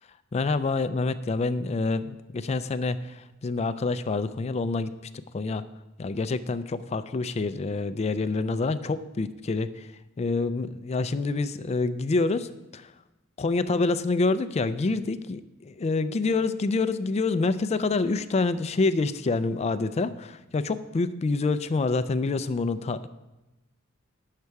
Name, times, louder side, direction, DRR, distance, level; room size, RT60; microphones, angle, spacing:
voice 1, 0.3-4.9 5.3-5.6 6.0-9.9 10.2-12.9 13.4-23.1, left 3 dB, 30° left, 12 dB, 0.3 m, -27 dB
9.6 x 6.6 x 4.6 m, 1.0 s
head